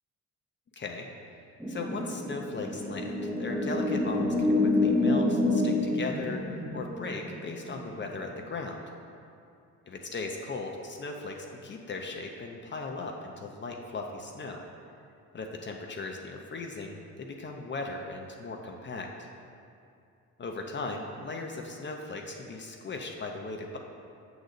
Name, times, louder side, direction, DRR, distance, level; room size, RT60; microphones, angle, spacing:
voice 1, 0.8-1.1 1.7-8.8 9.9-14.6 15.3-19.1 20.4-23.8, left 3 dB, 40° left, 1 dB, 0.7 m, -38 dB
sound 1, 1.6-8.5, left 2 dB, 5° right, 0.7 m, -28 dB
6.9 x 4.0 x 6.6 m, 2.5 s
cardioid pair, 90°, 30 cm